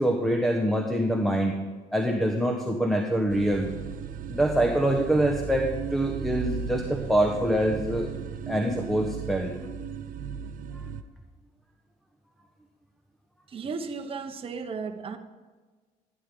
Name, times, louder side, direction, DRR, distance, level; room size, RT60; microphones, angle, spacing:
voice 1, 0.0-1.5 1.9-3.7 4.3-8.1 8.5-9.5 10.7-10.8, right 1 dB, ahead, 1 dB, 1.2 m, -25 dB
sound 1, 3.3-11.0, right 7 dB, 55° right, 0.7 m, -35 dB
voice 2, 13.5-15.2, right 5 dB, 35° right, 4 dB, 1.1 m, -35 dB
15.5 x 10.0 x 3.8 m, 1.4 s
cardioid pair, 110°, 17 cm